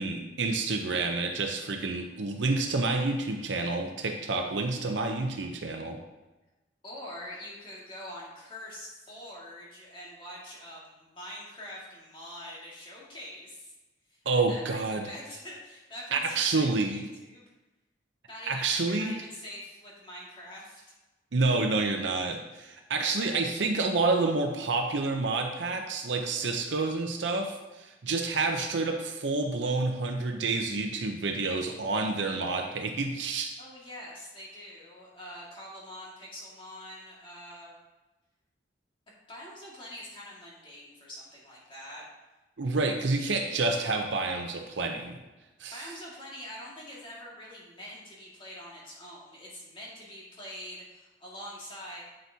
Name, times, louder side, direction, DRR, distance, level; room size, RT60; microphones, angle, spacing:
voice 1, 0.0-6.0 14.3-15.1 16.1-17.0 18.5-19.2 21.3-33.6 42.6-45.2 45.6-45.8, right 3 dB, 90° right, 3 dB, 0.7 m, -29 dB
voice 2, 6.8-13.7 14.1-17.5 18.3-20.8 33.6-37.8 39.3-42.1 45.7-52.0, left 1 dB, 30° left, -5 dB, 2.0 m, -44 dB
7.9 x 7.7 x 2.8 m, 1.1 s
head